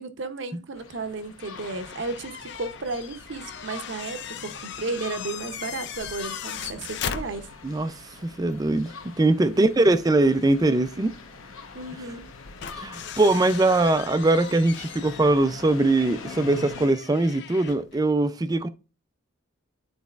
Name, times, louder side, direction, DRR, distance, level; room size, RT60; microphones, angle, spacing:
voice 1, 0.0-7.5 9.5-10.0 11.7-12.3, right 3 dB, 55° right, 0.7 m, -34 dB
sound 1, 0.7-16.9, left 4 dB, 75° left, 1.0 m, -44 dB
sound 2, 1.4-7.9 8.2-8.3 10.3-10.4 12.2-18.0, left 8 dB, 55° left, 0.4 m, -39 dB
voice 2, 7.6-11.1 12.8-18.7, right 2 dB, 15° right, 0.3 m, -22 dB
11.0 x 4.1 x 2.4 m
head